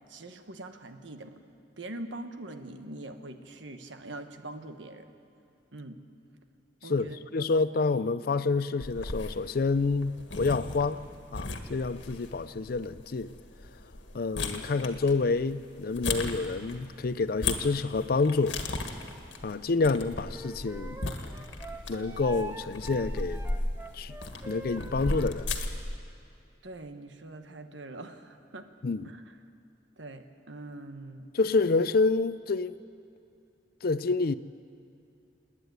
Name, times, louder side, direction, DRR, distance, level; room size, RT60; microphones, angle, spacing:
voice 1, 0.1-1.4 1.8-5.1 5.7-6.0 6.8-7.5 26.6-28.7 29.0-29.2 30.0-31.3, right 2 dB, 85° right, 1.3 m, -43 dB
voice 2, 6.8-11.0 11.3-13.3 14.1-18.6 19.4-21.0 21.9-23.4 23.9-24.1 24.5-25.5 28.8-29.1 31.3-32.8 33.8-34.3, left 3 dB, 55° left, 0.5 m, -28 dB
sound 1, 8.8-26.0, left 2 dB, 80° left, 1.6 m, -37 dB
Wind instrument woodwind instrument, 20.3-25.4, right 1 dB, 15° right, 1.0 m, -43 dB
28.0 x 9.9 x 9.4 m
head